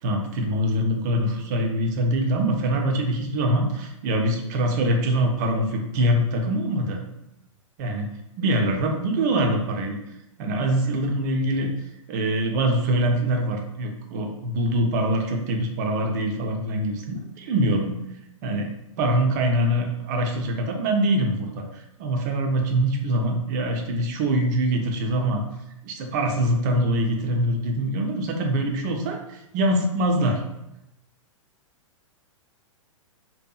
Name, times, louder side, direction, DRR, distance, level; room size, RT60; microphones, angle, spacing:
voice 1, 0.0-7.0 7.8-8.1 8.4-10.0 10.4-11.7 12.1-17.9 18.4-18.7 19.0-21.6 22.0-25.4 25.8-30.5, right 1 dB, 35° right, 3 dB, 0.4 m, -24 dB
2.7 x 2.2 x 2.3 m, 0.86 s
figure-of-eight pair, 110°, 17 cm